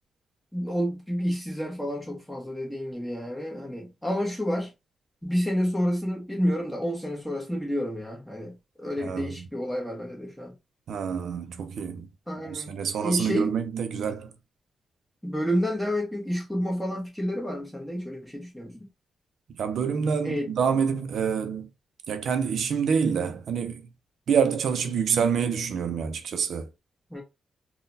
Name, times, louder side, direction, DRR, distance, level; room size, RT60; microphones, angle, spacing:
voice 1, 0.5-4.7 5.2-10.5 12.3-13.5 15.2-18.8 20.2-20.5 27.1-27.2, equal, ahead, 1.1 m, -30 dB
voice 2, 9.0-9.5 10.9-12.1 12.4-14.3 19.5-21.7 22.1-23.8 24.3-26.7, right 6 dB, 75° right, 0.4 m, -27 dB
3.7 x 2.2 x 2.6 m
wide cardioid pair, 135°, 0 cm